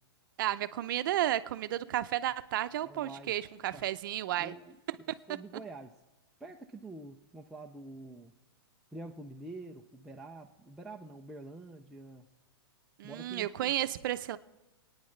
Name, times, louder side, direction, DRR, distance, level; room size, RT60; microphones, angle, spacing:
voice 1, 0.4-4.5 13.0-14.4, right 13 dB, 55° right, 13 dB, 0.6 m, -32 dB
voice 2, 2.8-3.3 3.7-3.8 4.4-4.8 5.3-5.9 6.4-8.4 8.9-12.3 13.0-13.7, right 2 dB, ahead, 0 dB, 0.3 m, -47 dB
25.0 x 9.6 x 3.2 m, 1.1 s
hypercardioid pair, 160°, 13 cm